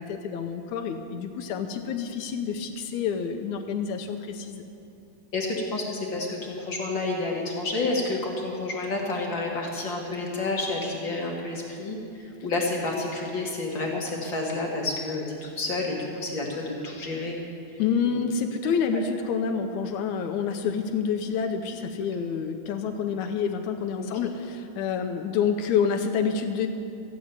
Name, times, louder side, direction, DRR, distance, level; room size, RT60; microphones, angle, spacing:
voice 1, 0.0-4.6 17.8-26.7, left 6 dB, 75° left, 5 dB, 2.0 m, -28 dB
voice 2, 5.3-17.4 17.7-17.8 18.6-19.0 24.0-24.1, left 2 dB, 45° left, -1 dB, 1.9 m, -30 dB
14.0 x 8.5 x 9.5 m, 2.7 s
omnidirectional pair, 3.6 m